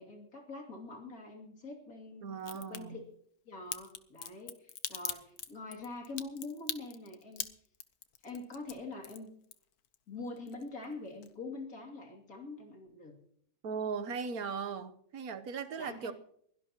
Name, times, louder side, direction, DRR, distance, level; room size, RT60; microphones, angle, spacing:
voice 1, 0.0-2.2 2.5-3.0 3.4-7.5 8.2-9.3 10.1-13.2 15.8-16.1, left 3 dB, 70° left, 1 dB, 3.2 m, -44 dB
voice 2, 2.2-3.0 13.6-16.1, right 6 dB, 80° right, 9 dB, 1.5 m, -38 dB
Crack, 2.4-2.8 3.7-10.0 10.3-10.9 11.2-11.3, left 8 dB, 90° left, 1.4 m, -41 dB
22.5 x 17.0 x 3.0 m, 0.69 s
omnidirectional pair, 1.6 m